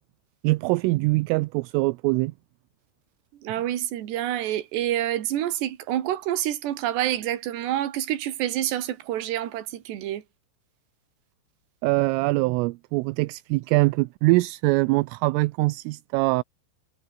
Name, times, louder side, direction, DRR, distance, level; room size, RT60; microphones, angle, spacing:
voice 1, 0.4-2.3 11.8-16.4, right 23 dB, 85° right, 3.1 m, -23 dB
voice 2, 3.4-10.2, right 12 dB, 60° right, 3.9 m, -27 dB
omnidirectional pair, 6.0 m